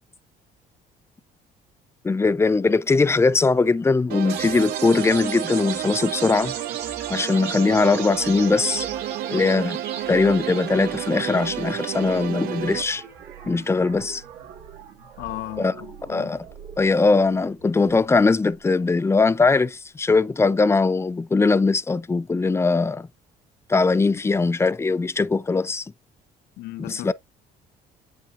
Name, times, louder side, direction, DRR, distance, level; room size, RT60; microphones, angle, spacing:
voice 1, 2.0-6.5 7.1-8.9 9.3-9.8 10.1-13.0 13.4-14.2 15.6-15.7 16.1-16.5 16.8-23.1 23.7-25.9 26.9-27.1, left 3 dB, 15° left, 0.4 m, -20 dB
sound 1, 4.1-12.8, right 13 dB, 65° right, 0.4 m, -31 dB
sound 2, 4.3-18.3, right 8 dB, 85° right, 2.0 m, -38 dB
voice 2, 15.2-16.4 24.2-24.4 26.6-27.1, left 18 dB, 75° left, 0.5 m, -36 dB
8.1 x 5.8 x 2.4 m
cardioid pair, 110°, 17 cm